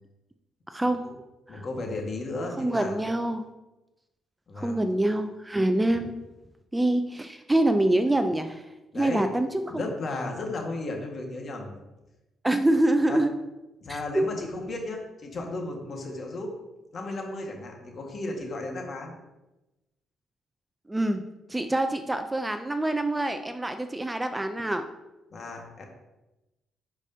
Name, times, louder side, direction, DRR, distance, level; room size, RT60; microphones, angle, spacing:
voice 1, 0.7-1.0 1.5-1.6 2.6-3.4 4.6-6.1 6.7-8.6 9.0-9.8 12.4-13.3 13.9-14.3 20.9-21.2 21.5-24.8, right 1 dB, 10° right, 8 dB, 0.4 m, -25 dB
voice 2, 1.5-3.0 4.5-4.9 8.9-9.2 9.7-11.7 13.1-13.2 13.8-16.5 16.9-19.1 25.3-25.8, left 2 dB, 50° left, 1 dB, 1.6 m, -34 dB
10.5 x 4.9 x 2.8 m, 1.0 s
cardioid pair, 90°, 0 cm